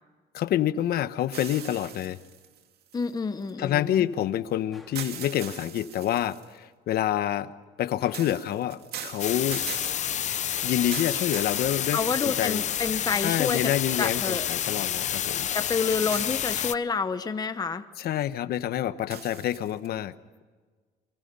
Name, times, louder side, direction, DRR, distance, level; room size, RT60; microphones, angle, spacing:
voice 1, 0.3-2.2 3.6-7.5 7.8-9.7 10.6-12.6 13.2-15.5 18.0-20.1, left 11 dB, 65° left, 13 dB, 1.1 m, -27 dB
sound 1, 1.3-3.5 4.9-6.6 8.1-12.4 13.0-13.1 16.1-16.9 19.1-19.9, right 9 dB, 70° right, 2.5 m, -41 dB
voice 2, 2.9-4.1 11.9-13.7 14.0-14.5 15.5-17.8, left 5 dB, 25° left, 9 dB, 1.0 m, -28 dB
Gunshot gunfire, 4.7-5.1 8.0-8.5, left 1 dB, ahead, 3.9 m, -53 dB
sound 2, 9.2-16.7, left 10 dB, 45° left, 0.6 m, -29 dB
29.5 x 24.0 x 5.5 m, 1.4 s
cardioid pair, 110°, 17 cm